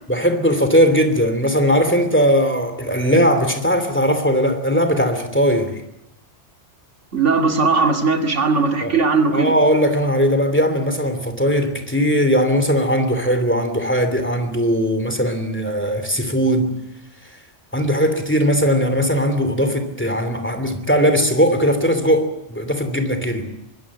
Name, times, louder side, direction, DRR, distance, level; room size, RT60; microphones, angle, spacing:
voice 1, 0.1-5.8 8.8-8.9 9.3-16.7 17.7-23.5, equal, 10° left, 8 dB, 3.0 m, -19 dB
voice 2, 7.1-9.5, right 4 dB, 90° right, 5 dB, 2.7 m, -18 dB
24.0 x 21.5 x 7.4 m, 0.87 s
omnidirectional pair, 1.2 m